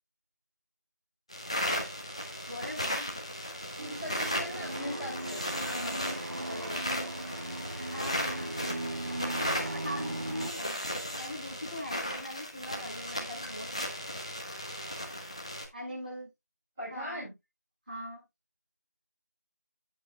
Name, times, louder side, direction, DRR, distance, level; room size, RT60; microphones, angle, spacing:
sound 1, 1.3-15.7, equal, 20° left, 1.1 m, -36 dB
voice 1, 2.5-3.1 7.9-8.6 9.7-10.8 11.1-13.9 15.7-16.3 16.8-17.3 17.9-18.2, left 1 dB, 30° right, 5.9 m, -41 dB
voice 2, 3.8-6.1 6.4-6.8 16.8-17.3, equal, 5° right, 1.7 m, -40 dB
sound 2, 3.8-10.5, right 1 dB, 50° right, 0.9 m, -38 dB
9.5 x 8.7 x 2.4 m
figure-of-eight pair, 180°, 9 cm